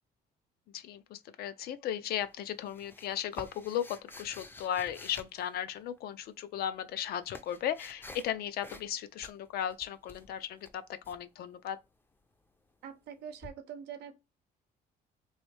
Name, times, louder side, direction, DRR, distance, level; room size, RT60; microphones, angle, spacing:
voice 1, 0.7-11.8, left 10 dB, 65° left, 0.5 m, -36 dB
sound 1, 2.2-6.0 6.8-8.3 8.6-8.9 9.2-11.2 13.4-13.5, left 2 dB, 10° left, 0.5 m, -50 dB
voice 2, 12.8-14.2, right 8 dB, 80° right, 0.7 m, -44 dB
3.1 x 2.6 x 3.2 m
cardioid pair, 110°, 17 cm